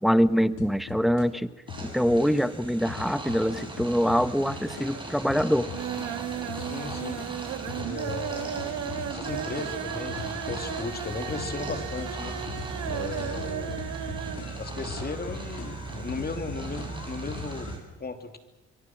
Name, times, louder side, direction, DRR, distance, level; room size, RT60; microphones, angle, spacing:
voice 1, 0.0-1.5 1.8-5.7, equal, ahead, 13 dB, 1.1 m, -24 dB
sound 1, 0.5-1.3 1.7-6.1 6.5-17.7, left 7 dB, 85° left, 3.3 m, -42 dB
sound 2, 1.7-17.8, right 3 dB, 15° right, 7.4 m, -38 dB
sound 3, 3.7-4.3 4.6-5.1 5.4-14.5 14.7-14.8 15.2-15.3, right 10 dB, 80° right, 1.9 m, -35 dB
voice 2, 6.5-7.5 7.8-8.5 9.1-12.4 12.9-13.8 14.5-17.7 18.0-18.4, left 3 dB, 30° left, 6 dB, 3.1 m, -36 dB
26.5 x 23.5 x 6.2 m, 1.1 s
cardioid pair, 90°, 30 cm